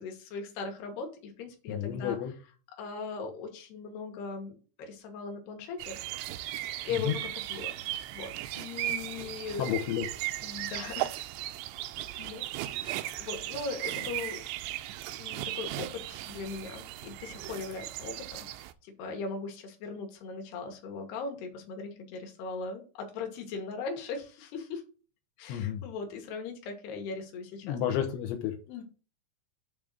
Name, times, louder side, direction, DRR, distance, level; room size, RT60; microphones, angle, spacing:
voice 1, 0.0-2.2 2.8-6.0 6.9-7.8 8.1-9.7 10.4-11.2 12.2-14.4 15.2-24.8 25.4-27.8 28.7-28.8, left 4 dB, 70° left, 2 dB, 3.5 m, -39 dB
voice 2, 1.7-2.3 6.9-7.2 9.6-10.1 25.5-25.8 27.6-28.5, left 10 dB, 85° left, 3 dB, 3.3 m, -31 dB
sound 1, 5.8-18.7, right 14 dB, 85° right, 2.8 m, -37 dB
10.5 x 3.6 x 6.4 m, 0.36 s
omnidirectional pair, 5.1 m